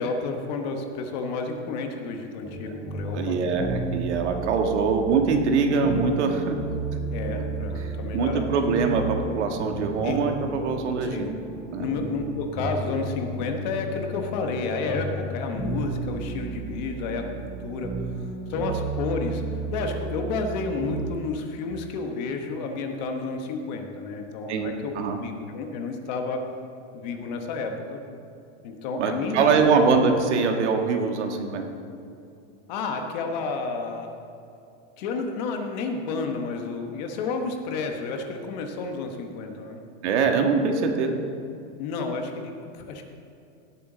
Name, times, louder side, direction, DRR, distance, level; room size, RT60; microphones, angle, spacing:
voice 1, 0.0-3.3 4.8-4.9 7.1-8.5 10.0-10.2 11.0-11.3 11.8-19.4 19.7-26.5 26.9-28.0 28.6-29.8 32.7-34.2 35.0-39.8 41.8-43.0, left 4 dB, 35° left, 4 dB, 1.1 m, -31 dB
sound 1, 2.4-21.0, right 3 dB, ahead, 0.5 m, -33 dB
voice 2, 3.1-6.6 7.8-11.3 11.7-11.9 24.5-25.2 29.0-31.7 40.0-41.2, right 5 dB, 70° right, 4 dB, 1.6 m, -23 dB
17.5 x 8.2 x 3.8 m, 2.6 s
supercardioid pair, 175°, 36 cm